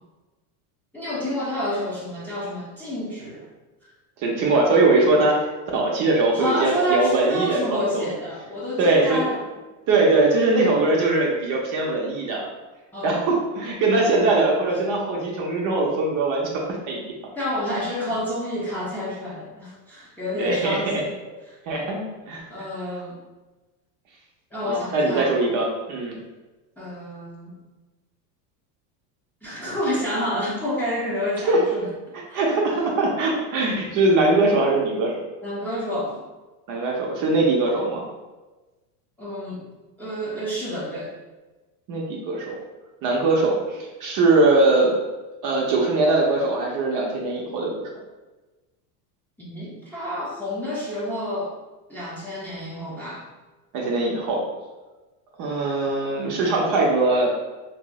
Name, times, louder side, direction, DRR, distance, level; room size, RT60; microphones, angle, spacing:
voice 1, 0.9-3.5 6.3-9.4 12.9-13.2 17.3-21.1 21.5-21.6 22.5-23.2 24.5-25.3 26.8-27.6 29.4-31.9 32.3-32.6 35.4-36.2 39.2-39.6 40.0-41.1 49.4-51.5 51.9-53.2, equal, 5° left, -8 dB, 0.6 m, -29 dB
voice 2, 4.2-5.4 5.7-8.1 8.8-9.3 9.9-12.5 13.0-17.0 20.3-21.0 21.7-22.7 24.6-26.2 31.5-31.6 32.1-35.1 36.7-38.0 41.9-42.6 43.0-45.0 45.4-47.8 53.7-54.4 55.4-57.4, right 2 dB, 45° right, -2 dB, 0.6 m, -21 dB
2.4 x 2.0 x 3.5 m, 1.2 s
supercardioid pair, 120°, 46 cm